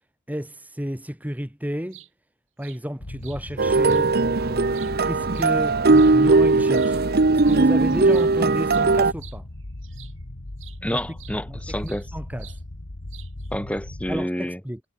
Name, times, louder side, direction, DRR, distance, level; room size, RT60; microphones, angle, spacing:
voice 1, 0.3-2.0 2.6-9.5 10.9-11.0 11.5-11.6 11.8-12.5 14.1-14.8, equal, 10° right, 2.2 m, -32 dB
sound 1, 1.9-2.1 2.6-2.8 3.2-3.4 3.9-4.0 4.5-6.1 6.7-7.0 7.4-7.6 7.9-10.2 10.6-10.8 11.2-12.1 12.4-12.6 13.1-13.5, right 15 dB, 75° right, 6.1 m, -48 dB
sound 2, 3.0-14.2, left 1 dB, 85° left, 1.9 m, -37 dB
sound 3, 3.6-9.1, right 3 dB, 55° right, 0.9 m, -19 dB
voice 2, 10.8-12.1 13.5-14.6, equal, 5° left, 3.2 m, -29 dB
head